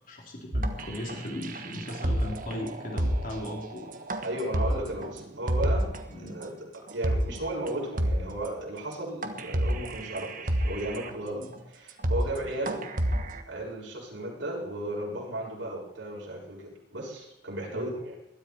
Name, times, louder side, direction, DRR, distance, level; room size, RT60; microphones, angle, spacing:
voice 1, 0.1-3.9 6.1-6.4 11.3-11.5 17.7-17.9, left 1 dB, 50° left, -1 dB, 3.8 m, -37 dB
sound 1, 0.5-6.0 6.4-6.5 6.9-7.4 7.7-7.8 8.0-8.5 8.9-9.0 9.2-11.1 11.5-11.6 11.9-12.4 12.7-13.4, right 1 dB, 50° right, 1.5 m, -29 dB
voice 2, 4.2-12.8 13.5-18.2, right 1 dB, 80° right, -3 dB, 7.3 m, -35 dB
21.0 x 13.0 x 4.7 m, 0.80 s
head